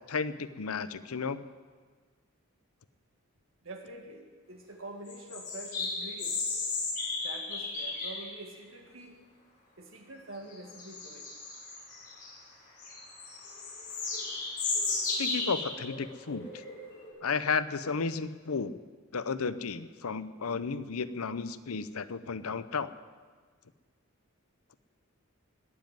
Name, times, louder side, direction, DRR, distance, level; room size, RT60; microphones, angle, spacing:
voice 1, 0.0-1.4 15.0-16.5 17.2-18.8 19.1-22.9, left 5 dB, 80° left, 14 dB, 0.7 m, -33 dB
voice 2, 3.6-6.5 7.2-9.2 9.8-11.3, right 2 dB, 60° right, 3 dB, 2.1 m, -46 dB
sound 1, 5.1-8.4 10.5-12.3 12.8-17.1, left 3 dB, 35° left, 6.2 m, -35 dB
20.0 x 7.5 x 9.3 m, 1.5 s
head